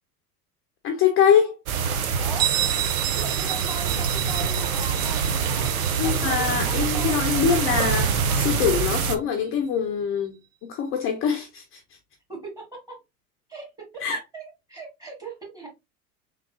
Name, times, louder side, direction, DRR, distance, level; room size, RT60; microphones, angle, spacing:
voice 1, 0.8-1.5 6.0-10.4 10.7-11.8 14.0-14.2, left 7 dB, 30° left, 0.5 m, -23 dB
sound 1, 1.7-9.2, right 6 dB, 70° right, 0.8 m, -25 dB
voice 2, 2.2-2.5 3.1-5.6 6.0-7.2 12.3-12.6 13.5-13.6 13.9-14.0 14.3-15.7, right 3 dB, 10° right, 1.7 m, -38 dB
Bell, 2.4-7.9, right 12 dB, 40° right, 0.9 m, -31 dB
3.4 x 3.2 x 2.7 m
figure-of-eight pair, 85°, 45 cm